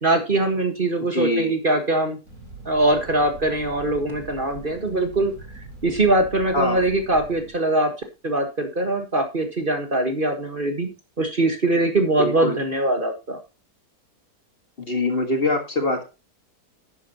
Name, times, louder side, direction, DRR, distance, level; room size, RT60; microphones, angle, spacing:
voice 1, 0.0-2.2 2.7-5.3 5.8-7.9 8.2-10.9 11.2-13.4, right 2 dB, 35° right, 5 dB, 1.7 m, -22 dB
voice 2, 1.1-1.5 6.5-6.8 12.2-12.6 14.9-16.1, left 2 dB, 35° left, 5 dB, 1.9 m, -23 dB
Fire, 2.2-7.5, right 3 dB, 50° right, 5.1 m, -42 dB
11.0 x 9.5 x 2.9 m, 0.28 s
omnidirectional pair, 1.7 m